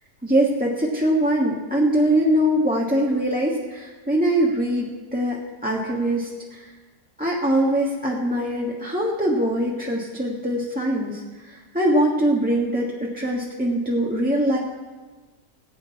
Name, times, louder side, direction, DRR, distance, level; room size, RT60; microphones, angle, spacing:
voice 1, 0.2-6.7 7.2-14.6, right 1 dB, 5° right, -4 dB, 1.3 m, -22 dB
15.5 x 6.5 x 9.4 m, 1.3 s
omnidirectional pair, 1.6 m